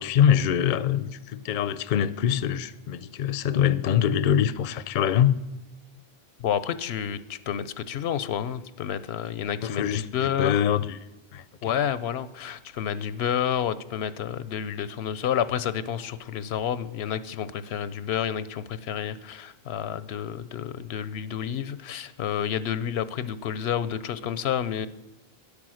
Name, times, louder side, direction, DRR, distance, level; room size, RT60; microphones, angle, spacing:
voice 1, 0.0-5.4 9.6-10.8 11.3-11.4, left 9 dB, 60° left, 15 dB, 0.6 m, -24 dB
voice 2, 6.4-10.6 11.6-24.9, left 9 dB, 90° left, 15 dB, 0.9 m, -30 dB
10.5 x 8.5 x 6.3 m, 0.97 s
omnidirectional pair, 1.0 m